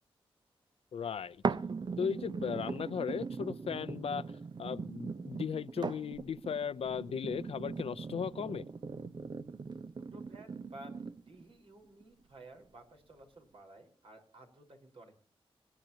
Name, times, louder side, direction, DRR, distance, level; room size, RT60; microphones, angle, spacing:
voice 1, 0.9-1.4 2.0-4.2 4.6-8.6, left 7 dB, 75° left, 0.7 m, -36 dB
sound 1, 1.4-11.4 12.0-12.1, right 4 dB, 50° right, 0.8 m, -40 dB
voice 2, 10.1-15.1, right 1 dB, 65° right, 4.9 m, -54 dB
26.5 x 10.0 x 2.9 m
cardioid pair, 70°, 10 cm